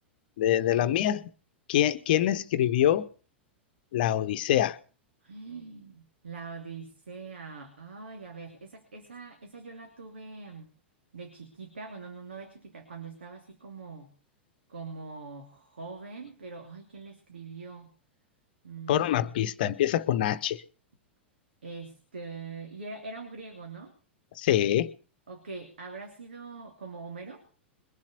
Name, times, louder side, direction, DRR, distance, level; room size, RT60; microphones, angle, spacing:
voice 1, 0.4-1.3 1.7-3.1 3.9-4.8 18.9-20.6 24.4-24.9, left 12 dB, 50° left, 1.0 m, -25 dB
voice 2, 5.2-10.7 11.1-14.1 14.7-17.9 18.6-19.1 21.6-23.9 25.3-27.4, right 4 dB, 70° right, 2.8 m, -43 dB
22.0 x 7.4 x 6.8 m
figure-of-eight pair, 95°, 6 cm